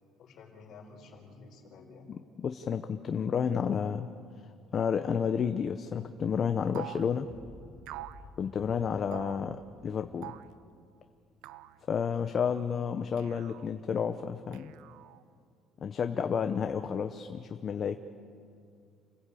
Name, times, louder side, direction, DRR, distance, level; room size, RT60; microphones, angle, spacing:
voice 1, 0.2-2.1 8.6-9.0 12.3-12.5, left 4 dB, 50° left, 1 dB, 4.3 m, -51 dB
voice 2, 2.4-4.1 4.7-7.3 8.4-10.3 11.9-14.7 15.8-18.0, left 7 dB, 30° left, 7 dB, 0.7 m, -31 dB
sound 1, 6.7-7.1 7.9-8.2 9.1-9.4 10.2-10.5 11.4-11.8 13.2-13.7 14.5-15.2, right 15 dB, 80° right, 0.7 m, -45 dB
sound 2, 7.3-11.6, left 2 dB, 5° left, 2.1 m, -54 dB
28.0 x 16.0 x 8.5 m, 2.4 s
cardioid pair, 170°, 0 cm